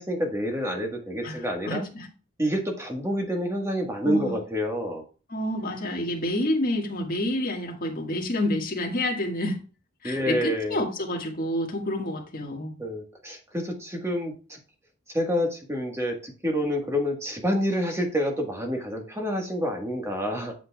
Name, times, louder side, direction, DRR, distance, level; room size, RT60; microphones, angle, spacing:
voice 1, 0.0-1.8 2.4-5.0 10.0-10.8 12.8-14.6 15.1-20.5, equal, 15° right, 1.4 m, -28 dB
voice 2, 1.2-2.1 4.0-4.4 5.3-9.6 10.0-12.8, left 1 dB, 40° left, 1.7 m, -28 dB
8.1 x 7.9 x 2.3 m
head